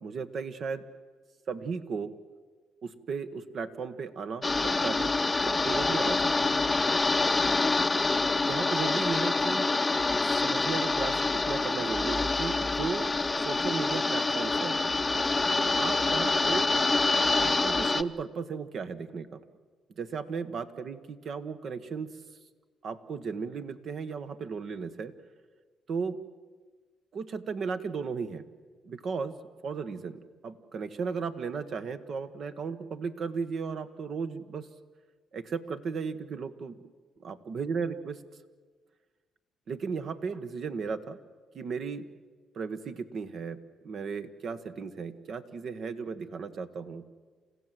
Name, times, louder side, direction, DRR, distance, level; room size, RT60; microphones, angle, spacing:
voice 1, 0.0-0.8 1.5-2.1 2.8-5.1 5.5-6.8 8.4-9.7 10.2-13.1 13.4-14.8 15.8-16.7 17.4-19.4 20.0-22.1 22.8-25.1 25.9-26.2 27.1-28.4 28.9-29.3 29.6-34.7 35.3-36.8 37.2-38.2 39.7-41.2 41.5-42.1 42.5-43.6 43.8-47.0, right 5 dB, 60° right, 10 dB, 1.4 m, -35 dB
sound 1, 4.4-18.0, left 3 dB, 20° left, 0.7 m, -26 dB
29.0 x 15.5 x 7.7 m, 1.5 s
cardioid pair, 90°, 0 cm